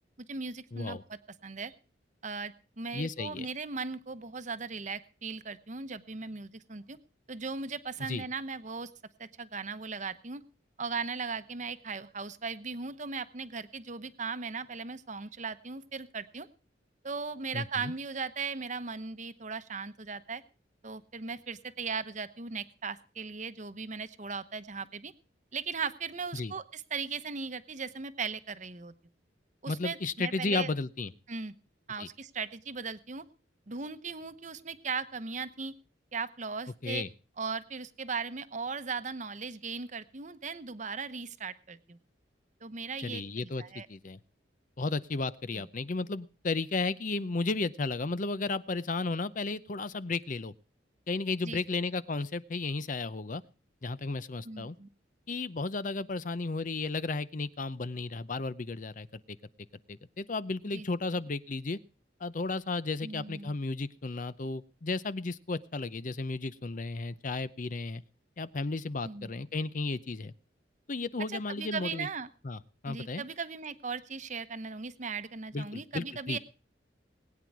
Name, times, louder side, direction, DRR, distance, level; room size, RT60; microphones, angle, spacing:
voice 1, 0.2-1.7 2.2-7.0 7.3-8.9 9.2-10.4 10.8-16.5 17.0-20.4 20.8-25.1 25.5-28.9 29.6-30.7 31.3-31.5 31.9-33.2 33.7-35.7 36.1-37.0 37.4-42.0 42.6-43.2 43.6-43.9 45.5-45.6 51.4-51.6 54.4-54.9 60.7-60.8 63.0-63.5 69.0-69.3 71.3-72.3 72.9-76.4, right 5 dB, 40° right, 11 dB, 1.0 m, -38 dB
voice 2, 0.7-1.0 2.9-3.5 8.0-8.2 17.5-17.9 26.3-26.5 29.7-31.1 32.0-32.1 36.8-37.1 43.0-43.6 43.9-44.2 44.8-50.5 51.1-53.4 53.8-54.7 55.3-59.1 59.9-61.8 62.2-68.0 68.4-70.3 70.9-72.1 72.4-72.6 72.8-73.2 75.5-76.4, left 3 dB, 45° left, 15 dB, 0.6 m, -33 dB
21.0 x 9.4 x 4.7 m, 0.35 s
head